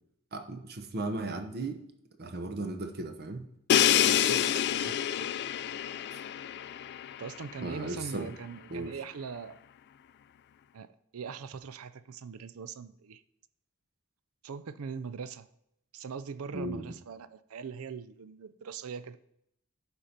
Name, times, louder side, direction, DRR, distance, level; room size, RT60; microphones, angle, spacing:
voice 1, 0.3-1.8 2.2-3.5 7.6-8.3 8.7-8.9 16.5-16.8, right 2 dB, 45° right, 6 dB, 0.9 m, -36 dB
Crash cymbal, 3.7-7.5, left 10 dB, 50° left, 0.3 m, -27 dB
voice 2, 4.0-5.3 7.2-9.6 10.7-13.2 14.4-15.5 15.9-19.2, right 6 dB, 70° right, 14 dB, 0.5 m, -41 dB
11.0 x 4.5 x 5.2 m, 0.77 s
head